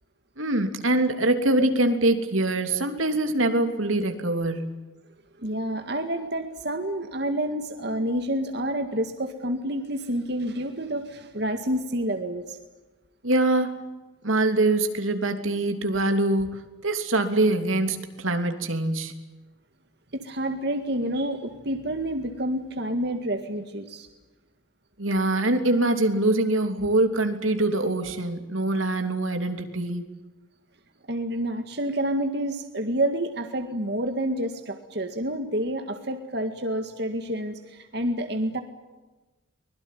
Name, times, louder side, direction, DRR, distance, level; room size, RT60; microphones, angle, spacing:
voice 1, 0.4-4.8 13.2-13.8 14.2-19.1 25.0-30.0, right 2 dB, 80° right, 7 dB, 3.1 m, -24 dB
voice 2, 5.4-12.6 20.1-24.1 31.1-38.6, right 1 dB, 55° right, 6 dB, 2.0 m, -29 dB
24.5 x 21.5 x 9.4 m, 1.2 s
head